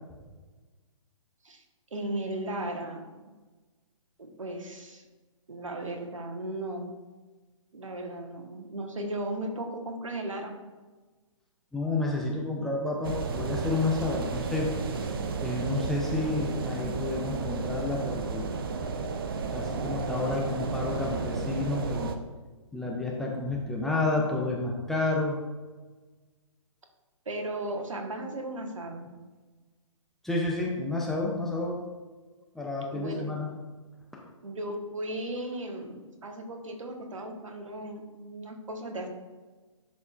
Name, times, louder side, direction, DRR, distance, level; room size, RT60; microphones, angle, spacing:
voice 1, 1.9-3.3 4.2-5.0 5.5-6.9 7.7-10.5 22.8-22.9 27.2-29.1 32.9-33.4 34.4-39.1, right 1 dB, 70° right, 4 dB, 1.2 m, -36 dB
voice 2, 11.7-14.7 15.4-18.5 19.5-22.1 22.7-25.4 30.2-31.8 32.5-33.5 34.1-34.2, left 2 dB, ahead, -3 dB, 0.5 m, -30 dB
sound 1, 13.0-22.2, right 4 dB, 45° right, 0.6 m, -33 dB
11.0 x 4.2 x 2.4 m, 1.3 s
figure-of-eight pair, 135°, 17 cm